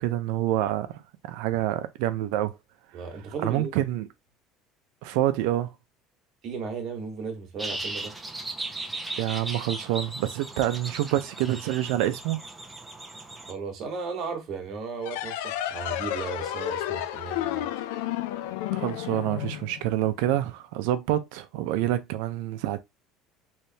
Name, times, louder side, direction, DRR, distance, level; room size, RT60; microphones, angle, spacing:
voice 1, 0.0-2.5 3.4-4.1 5.0-5.7 9.2-12.4 18.7-22.8, right 13 dB, 80° right, 0.6 m, -27 dB
voice 2, 2.9-3.7 6.4-8.1 13.5-17.7, right 5 dB, 45° right, 1.4 m, -35 dB
sound 1, 7.6-13.5, right 2 dB, 10° right, 0.7 m, -37 dB
sound 2, 15.0-20.3, left 13 dB, 90° left, 0.4 m, -32 dB
3.4 x 3.2 x 2.8 m
cardioid pair, 140°, 0 cm